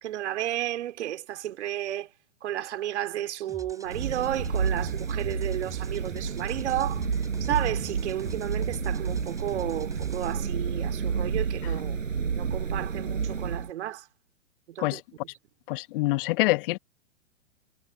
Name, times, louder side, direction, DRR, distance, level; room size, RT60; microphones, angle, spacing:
voice 1, 0.0-2.1 2.4-7.1 7.4-12.0 12.4-14.1 14.7-15.0, right 12 dB, 60° right, 3.0 m, -32 dB
sound 1, 3.5-10.3, right 3 dB, 10° right, 7.7 m, -45 dB
sound 2, 3.9-13.7, right 6 dB, 80° right, 5.5 m, -30 dB
voice 2, 15.7-16.8, left 21 dB, 45° left, 1.4 m, -25 dB
figure-of-eight pair, 110°, 39 cm